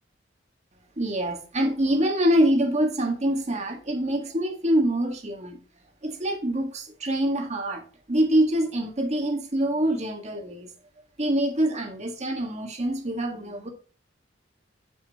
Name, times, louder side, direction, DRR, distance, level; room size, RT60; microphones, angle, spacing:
voice 1, 1.0-5.6 6.0-7.8 8.1-10.7 11.2-13.7, right 1 dB, 35° right, 1.7 m, -25 dB
7.9 x 7.0 x 3.0 m
head